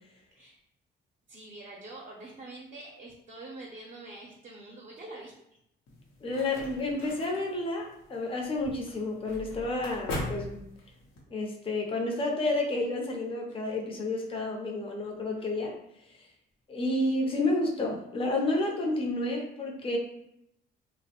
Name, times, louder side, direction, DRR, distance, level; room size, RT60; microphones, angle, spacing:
voice 1, 1.3-5.3, right 2 dB, 40° right, -3 dB, 0.6 m, -45 dB
sound 1, 5.9-11.2, left 2 dB, 90° left, 0.7 m, -40 dB
voice 2, 6.2-10.6 11.3-15.8 16.1-16.3 16.7-20.0, left 2 dB, 25° left, 0 dB, 0.5 m, -30 dB
2.5 x 2.0 x 2.8 m, 0.78 s
cardioid pair, 90°, 20 cm